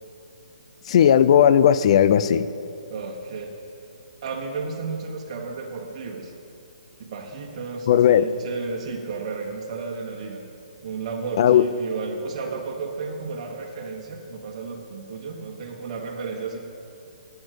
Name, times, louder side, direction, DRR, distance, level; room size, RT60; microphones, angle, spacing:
voice 1, 0.9-2.5 7.9-8.3 11.4-11.7, left 9 dB, 45° left, 14 dB, 0.5 m, -16 dB
voice 2, 2.9-3.5 4.2-6.3 7.0-10.4 10.8-16.6, right 4 dB, 45° right, 1 dB, 1.5 m, -33 dB
8.7 x 8.0 x 7.8 m, 2.6 s
hypercardioid pair, 145°, 4 cm